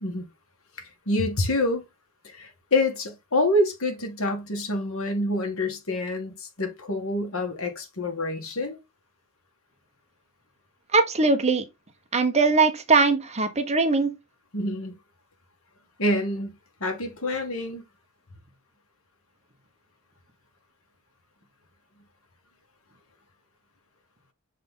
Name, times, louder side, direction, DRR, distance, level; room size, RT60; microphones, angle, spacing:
voice 1, 0.8-1.9 2.2-8.8 14.5-14.9 16.0-16.5 16.8-17.8, left 1 dB, 70° left, 1.7 m, -27 dB
voice 2, 10.9-11.6 12.1-14.1, right 4 dB, 30° right, 1.0 m, -21 dB
6.7 x 3.8 x 3.8 m
head